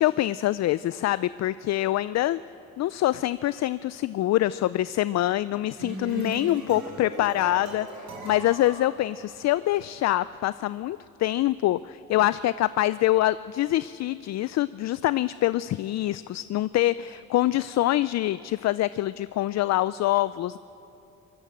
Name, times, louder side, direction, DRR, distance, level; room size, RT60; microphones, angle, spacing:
voice 1, 0.0-2.4 2.8-20.6, left 15 dB, 60° left, 16 dB, 0.4 m, -25 dB
sound 1, 5.5-9.8, right 2 dB, 70° right, 5.8 m, -38 dB
22.5 x 19.5 x 7.7 m, 2.8 s
cardioid pair, 90°, 30 cm